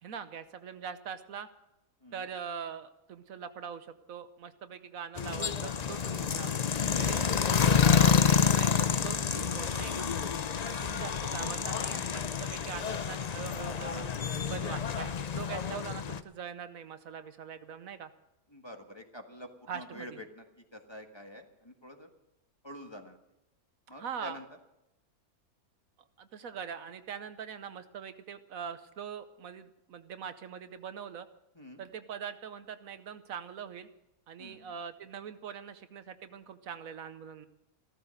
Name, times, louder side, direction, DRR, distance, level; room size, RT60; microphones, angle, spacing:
voice 1, 0.0-1.5 2.1-6.6 6.9-10.1 10.6-14.1 14.5-18.1 19.7-20.2 23.9-24.4 26.2-31.3 31.8-33.9 34.3-37.5, right 7 dB, 75° right, 11 dB, 1.2 m, -42 dB
sound 1, 5.2-16.2, left 7 dB, 55° left, 0.4 m, -28 dB
voice 2, 18.5-20.5 20.7-22.1 22.6-23.2 23.9-24.4 31.5-31.8 34.4-34.7, left 1 dB, 20° left, 4 dB, 1.5 m, -47 dB
15.5 x 14.0 x 6.5 m, 0.90 s
omnidirectional pair, 1.5 m